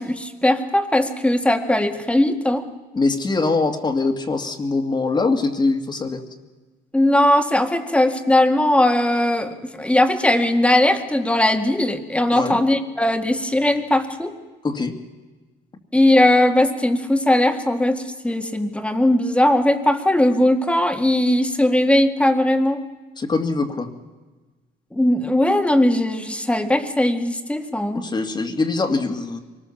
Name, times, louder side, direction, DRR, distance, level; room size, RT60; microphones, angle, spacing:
voice 1, 0.0-2.6 6.9-14.3 15.9-22.8 24.9-28.0, left 1 dB, 5° left, 6 dB, 1.8 m, -19 dB
voice 2, 2.9-6.2 12.3-12.6 14.6-14.9 23.2-23.9 27.9-29.4, left 3 dB, 25° left, 5 dB, 2.1 m, -22 dB
24.0 x 19.5 x 7.2 m, 1.3 s
cardioid pair, 110°, 17 cm